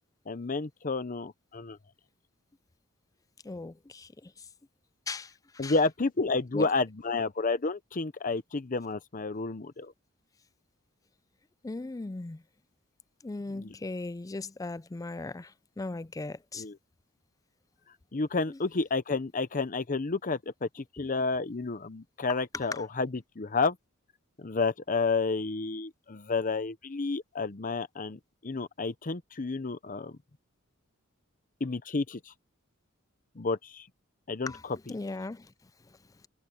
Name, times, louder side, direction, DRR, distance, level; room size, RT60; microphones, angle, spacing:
voice 1, 0.3-1.8 5.6-9.9 13.5-13.7 16.6-16.8 18.1-23.1 23.4-23.8 24.4-30.1 31.6-32.3 33.4-33.9 34.3-34.8, left 3 dB, 40° left, 0.7 m, -30 dB
voice 2, 3.4-4.5 5.1-5.8 6.5-6.7 11.6-12.4 13.2-16.6 18.5-18.6 21.0-21.1 22.5-22.7 34.5-34.6 34.9-35.5, left 3 dB, 15° left, 0.4 m, -38 dB
head